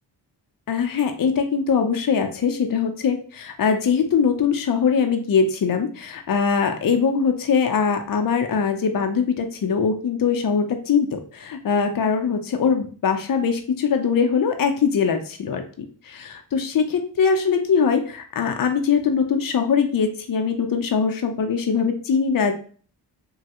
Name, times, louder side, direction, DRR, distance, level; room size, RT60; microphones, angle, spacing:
voice 1, 0.7-22.5, left 6 dB, 50° left, 5 dB, 0.7 m, -22 dB
3.1 x 2.3 x 2.9 m, 0.41 s
cardioid pair, 55°, 43 cm